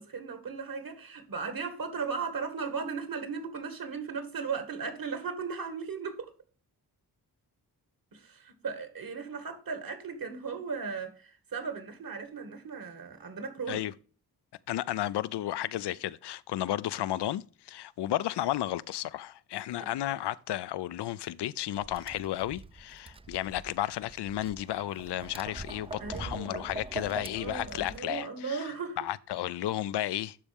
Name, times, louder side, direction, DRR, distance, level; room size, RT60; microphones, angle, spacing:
voice 1, 0.0-6.3 8.1-13.8 19.8-19.9 26.0-26.6 27.3-29.0, right 5 dB, 55° right, 2.1 m, -37 dB
voice 2, 14.7-30.4, left 13 dB, 85° left, 0.5 m, -33 dB
Tap, 21.7-28.0, right 3 dB, 15° right, 0.4 m, -43 dB
12.0 x 4.2 x 3.5 m
cardioid pair, 85°, 40 cm